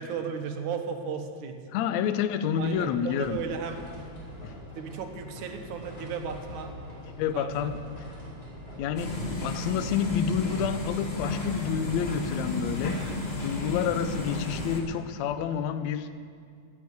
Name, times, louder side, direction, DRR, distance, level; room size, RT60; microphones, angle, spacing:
voice 1, 0.0-1.6 2.6-3.8 4.8-6.7 7.3-7.7 12.9-13.2, right 6 dB, 85° right, 5 dB, 2.5 m, -35 dB
voice 2, 1.7-3.4 4.4-4.6 7.2-7.8 8.8-13.0 13.4-16.2, left 8 dB, 75° left, 11 dB, 1.9 m, -29 dB
sound 1, 2.5-15.6, left 1 dB, 15° left, 3.1 m, -45 dB
sound 2, 9.0-14.8, left 2 dB, 35° left, 0.9 m, -32 dB
14.5 x 8.5 x 8.0 m, 2.2 s
omnidirectional pair, 3.4 m